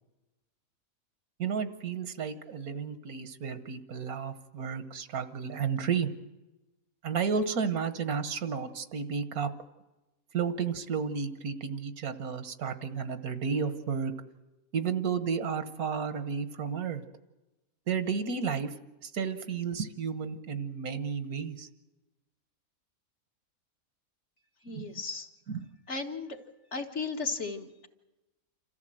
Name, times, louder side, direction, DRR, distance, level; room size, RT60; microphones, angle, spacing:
voice 1, 1.4-6.1 7.0-9.5 10.3-14.1 14.7-17.0 17.9-18.7 19.0-21.7 24.7-24.9 25.5-25.6, right 6 dB, 80° right, 11 dB, 1.6 m, -32 dB
voice 2, 24.6-25.3 25.9-26.4 26.7-27.9, left 4 dB, 50° left, 4 dB, 1.6 m, -35 dB
27.5 x 14.5 x 7.7 m, 1.1 s
omnidirectional pair, 1.5 m